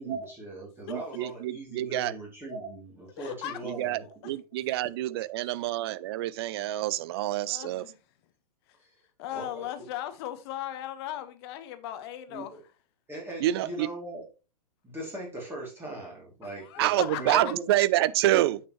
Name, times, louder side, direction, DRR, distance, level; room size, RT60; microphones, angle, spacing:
voice 1, 0.0-4.0 4.7-4.8 5.1-5.2 8.8-8.9 9.3-9.7 12.3-12.6 13.1-14.2 14.8-17.6 18.3-18.4, right 2 dB, 10° right, 2.8 m, -39 dB
voice 2, 0.9-2.1 3.6-7.8 13.4-13.9 16.8-18.6, right 15 dB, 40° right, 0.5 m, -27 dB
voice 3, 3.2-3.6 5.4-5.5 7.4-8.0 8.7-8.8 9.2-12.5 16.4-17.5, left 12 dB, 40° left, 1.2 m, -37 dB
8.6 x 6.5 x 3.1 m
figure-of-eight pair, 110°, 20 cm